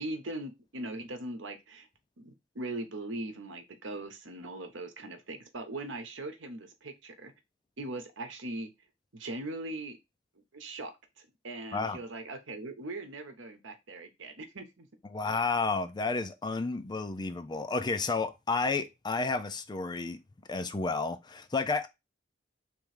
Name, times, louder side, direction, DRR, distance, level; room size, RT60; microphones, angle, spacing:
voice 1, 0.0-1.9 2.2-7.3 7.8-8.7 9.1-10.0 10.5-14.9, right 2 dB, 75° right, 1.0 m, -40 dB
voice 2, 15.1-20.2 20.5-21.9, left 3 dB, 25° left, 0.4 m, -31 dB
3.5 x 3.1 x 4.8 m
head